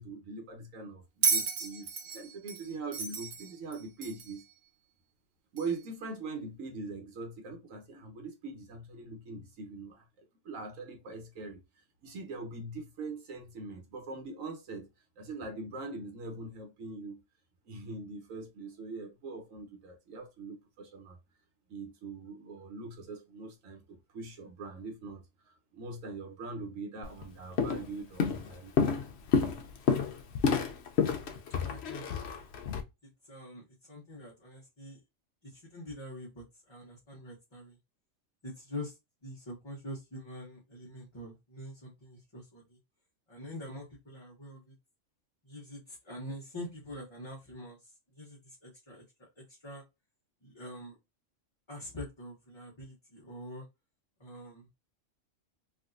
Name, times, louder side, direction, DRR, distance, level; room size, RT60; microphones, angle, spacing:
voice 1, 0.0-4.4 5.5-11.6 12.0-14.9 15.2-17.2 17.7-21.2 21.7-29.0, right 3 dB, 85° right, 1.3 m, -42 dB
Bell, 1.2-4.4 5.6-5.7, right 5 dB, 60° right, 0.7 m, -32 dB
Walk footsteps, 27.0-27.2 27.6-27.9 28.2-32.8, left 5 dB, 65° left, 0.8 m, -29 dB
voice 2, 31.6-32.1 33.0-35.0 35.4-37.8 38.4-42.8 43.3-44.7 45.4-49.8 50.4-51.0 51.7-53.7 54.2-54.7, left 1 dB, 25° left, 0.8 m, -45 dB
3.4 x 2.7 x 2.5 m
omnidirectional pair, 1.3 m